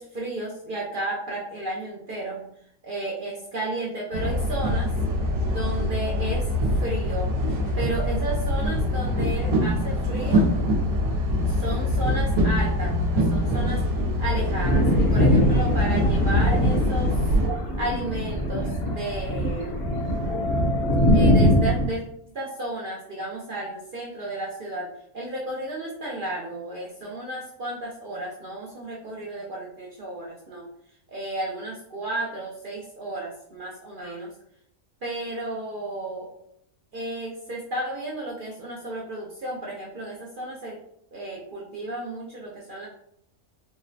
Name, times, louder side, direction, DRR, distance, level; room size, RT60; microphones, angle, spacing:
voice 1, 0.0-2.5 2.8-4.9 5.4-6.4 6.7-7.3 7.8-10.5 11.5-17.2 17.7-19.7 21.1-22.0 22.3-24.9 25.1-30.7 31.1-34.3 35.0-36.3 36.9-40.8 41.1-42.9, right 1 dB, 55° right, -4 dB, 0.6 m, -33 dB
sound 1, 4.1-17.5, left 1 dB, 80° right, 1.1 m, -24 dB
Thunder, 14.6-21.9, equal, 50° left, 0.9 m, -22 dB
3.7 x 2.0 x 2.6 m, 0.71 s
omnidirectional pair, 1.5 m